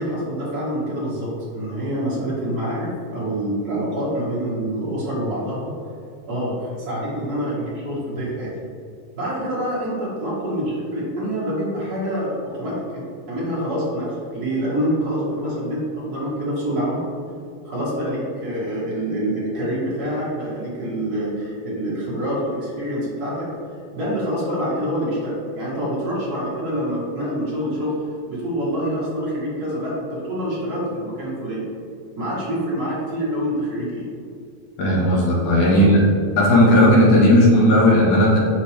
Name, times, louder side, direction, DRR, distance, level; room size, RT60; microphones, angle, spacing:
voice 1, 0.0-5.7 6.3-8.5 9.1-17.0 17.6-23.5 23.9-27.9 28.3-31.6 32.1-34.1 35.7-36.0, equal, 40° right, -7 dB, 1.4 m, -26 dB
voice 2, 34.8-36.0 36.4-38.4, left 1 dB, 60° left, -5 dB, 2.7 m, -15 dB
8.2 x 5.0 x 3.4 m, 2.4 s
omnidirectional pair, 4.4 m